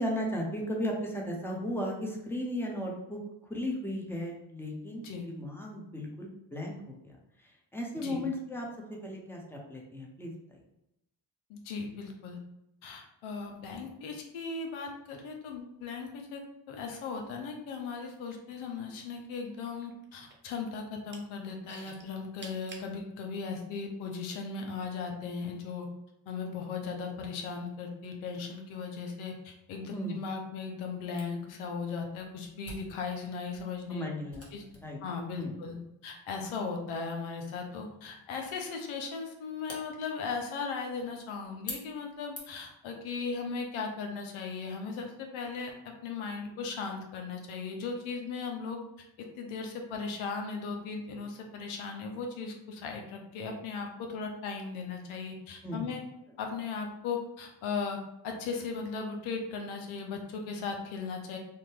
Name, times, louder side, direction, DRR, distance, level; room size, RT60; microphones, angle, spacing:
voice 1, 0.0-3.2 3.5-7.2 7.4-10.6 29.9-30.2 33.9-34.5 34.8-35.0 35.4-35.5 55.6-55.9, left 1 dB, 5° left, -1 dB, 0.9 m, -36 dB
voice 2, 11.5-12.4 12.8-25.9 26.3-34.1 34.5-34.6 35.0-48.8 49.2-56.0 56.4-58.0 58.2-61.4, left 5 dB, 85° left, 2 dB, 0.6 m, -37 dB
sound 1, 18.0-19.2 19.5-20.5 20.9-21.2 21.7-22.9 23.6-23.7, right 3 dB, 25° right, 0.7 m, -49 dB
Camera, 31.2-42.8, left 1 dB, 30° left, 1.2 m, -50 dB
2.8 x 2.1 x 3.2 m, 0.85 s
supercardioid pair, 40°, 47 cm